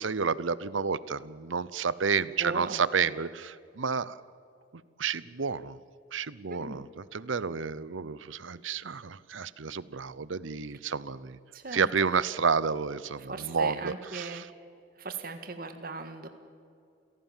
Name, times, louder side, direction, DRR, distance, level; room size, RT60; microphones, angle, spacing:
voice 1, 0.0-4.2 5.0-5.8 6.1-11.4 11.7-14.5, right 5 dB, 85° right, 18 dB, 0.8 m, -30 dB
voice 2, 2.4-2.8 6.5-6.8 11.5-11.8 13.2-14.5 15.0-16.3, right 3 dB, 50° right, 7 dB, 1.8 m, -38 dB
29.0 x 17.5 x 7.4 m, 2.4 s
head